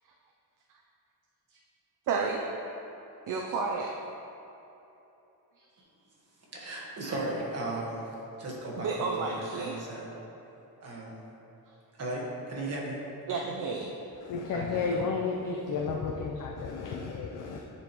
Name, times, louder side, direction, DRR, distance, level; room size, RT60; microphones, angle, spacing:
voice 1, 2.1-2.4 3.3-3.9 8.7-9.8 13.3-13.9, right 4 dB, 55° right, 0 dB, 0.5 m, -31 dB
voice 2, 6.5-8.0 8.4-9.3 9.6-10.1 10.8-11.2 12.0-12.2 12.5-13.0 14.5-15.1 16.7-16.8, right 2 dB, 40° right, -4 dB, 1.3 m, -36 dB
voice 3, 14.3-17.6, left 4 dB, 55° left, 0 dB, 0.5 m, -32 dB
9.7 x 4.3 x 2.9 m, 3.0 s
wide cardioid pair, 145°, 38 cm